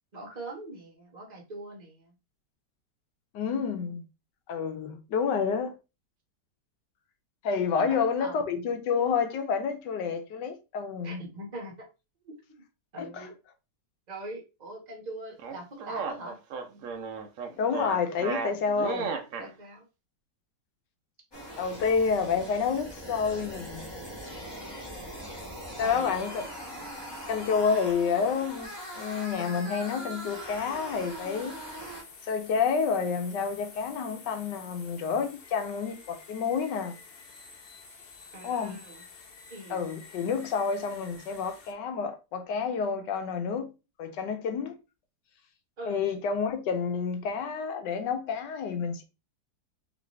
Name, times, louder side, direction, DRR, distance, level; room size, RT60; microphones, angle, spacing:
voice 1, 0.1-2.1 7.8-8.4 11.0-11.9 12.2-12.3 12.9-13.3 14.1-16.3 19.4-19.8 25.8-26.1 38.3-39.0 39.5-39.8 45.8-46.1, right 2 dB, 30° right, 1.1 m, -42 dB
voice 2, 3.3-4.0 4.5-5.8 7.4-11.2 13.0-13.3 17.6-19.1 21.6-23.9 25.8-26.4 27.3-31.5 32.2-37.0 38.4-38.8 39.7-43.7 44.0-44.8 45.8-49.0, left 6 dB, 80° left, 1.4 m, -29 dB
sound 1, 15.4-19.5, right 5 dB, 65° right, 0.8 m, -34 dB
sound 2, 21.3-32.0, right 1 dB, 15° left, 1.4 m, -41 dB
sound 3, 25.9-41.7, left 4 dB, 55° left, 0.6 m, -51 dB
4.0 x 3.3 x 3.0 m
omnidirectional pair, 1.9 m